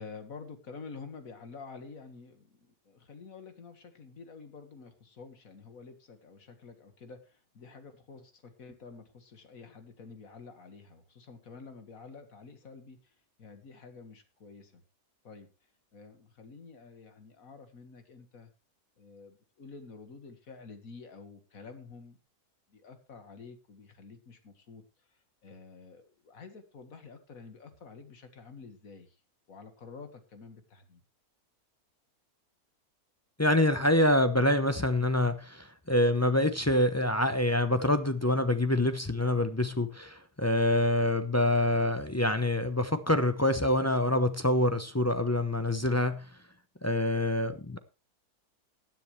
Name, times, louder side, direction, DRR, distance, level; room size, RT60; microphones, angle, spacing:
voice 1, 0.0-14.8 15.2-15.5 15.9-18.5 19.0-22.2 22.7-24.8 25.1-29.2 29.5-31.0, left 4 dB, 60° left, 2.2 m, -49 dB
voice 2, 33.4-46.4 46.8-47.8, left 1 dB, 15° left, 0.5 m, -26 dB
16.0 x 10.5 x 3.2 m
omnidirectional pair, 1.6 m